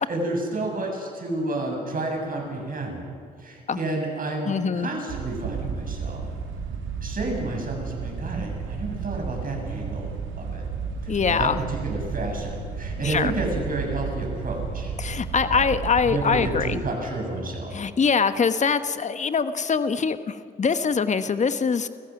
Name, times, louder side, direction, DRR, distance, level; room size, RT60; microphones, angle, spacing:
voice 1, 0.1-3.1 3.4-6.3 7.0-10.1 10.4-10.6 11.0-14.9 15.4-15.7 16.0-17.7, right 2 dB, 45° right, 1 dB, 7.6 m, -30 dB
voice 2, 4.5-4.9 11.1-11.6 13.0-13.3 15.0-16.8 17.7-21.9, left 5 dB, 35° left, 11 dB, 1.2 m, -23 dB
sound 1, 5.1-16.9, right 6 dB, 70° right, 2.2 m, -33 dB
29.5 x 15.0 x 6.1 m, 2.3 s
hypercardioid pair, 50°, 21 cm